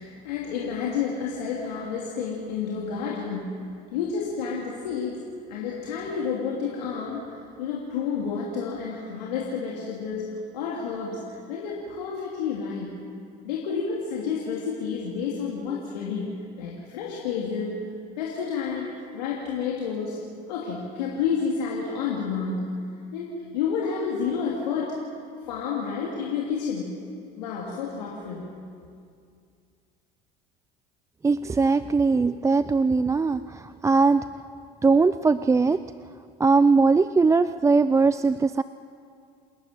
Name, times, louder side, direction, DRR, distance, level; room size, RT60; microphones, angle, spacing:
voice 1, 0.0-3.5 3.9-5.2 5.5-10.3 10.5-13.0 13.4-17.8 18.2-20.2 20.5-22.7 23.1-25.0 25.5-26.9 27.4-28.5, left 6 dB, 85° left, -4 dB, 3.1 m, -30 dB
voice 2, 31.2-33.4 33.8-34.2 34.8-35.8 36.4-38.6, right 4 dB, 15° right, 13 dB, 0.4 m, -20 dB
29.0 x 11.0 x 9.4 m, 2.3 s
hypercardioid pair, 85°, 21 cm